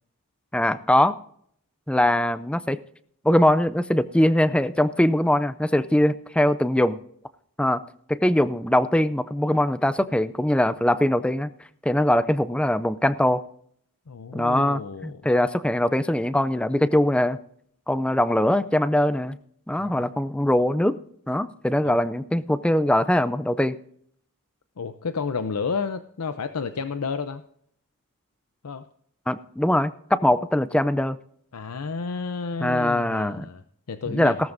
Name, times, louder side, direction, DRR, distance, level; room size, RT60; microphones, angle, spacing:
voice 1, 0.5-1.2 1.9-2.8 3.2-7.0 7.6-7.8 8.1-11.5 11.8-13.4 14.3-17.4 17.9-19.4 19.7-21.0 21.3-23.8 29.3-31.2 32.6-33.4 34.1-34.3, left 1 dB, 5° left, 14 dB, 0.4 m, -22 dB
voice 2, 14.1-15.2 19.8-20.2 21.8-22.0 24.8-27.4 28.6-28.9 31.5-34.4, left 5 dB, 85° left, 10 dB, 0.6 m, -31 dB
17.5 x 13.0 x 2.6 m, 0.66 s
head